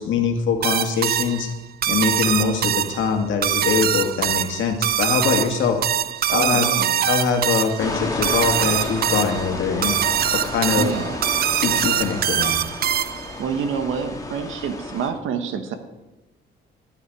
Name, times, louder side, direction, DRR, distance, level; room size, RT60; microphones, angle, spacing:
voice 1, 0.0-1.5 1.9-5.8 6.3-6.7 7.0-10.0 10.3-10.9 11.6-12.6, left 6 dB, 75° left, 4 dB, 1.9 m, -23 dB
sound 1, 0.6-13.4, right 10 dB, 50° right, 0.5 m, -23 dB
voice 2, 6.3-7.1 10.8-11.2 13.4-15.8, right 6 dB, 80° right, 9 dB, 1.3 m, -27 dB
sound 2, 7.8-15.1, left 2 dB, 15° left, 1.8 m, -31 dB
14.5 x 7.2 x 4.8 m, 1.1 s
cardioid pair, 90°, 20 cm